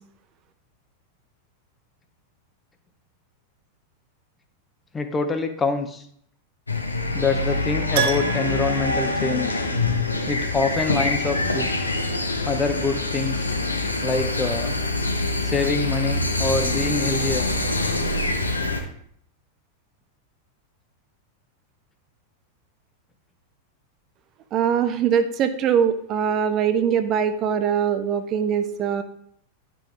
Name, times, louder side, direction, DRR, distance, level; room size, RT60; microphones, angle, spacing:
voice 1, 4.9-6.0 7.1-9.6 10.3-11.7 12.4-13.5 14.0-14.8 15.4-17.4, left 4 dB, 15° left, 7 dB, 0.8 m, -25 dB
sound 1, 6.7-18.8, left 2 dB, 80° left, 0.9 m, -25 dB
Keyboard (musical), 7.9-10.0 10.3-10.4 13.1-13.2 13.4-13.5, right 7 dB, 50° right, 0.9 m, -30 dB
voice 2, 24.5-29.0, right 8 dB, 35° right, 10 dB, 0.5 m, -22 dB
9.8 x 6.2 x 3.3 m, 0.66 s
figure-of-eight pair, 90°, 0 cm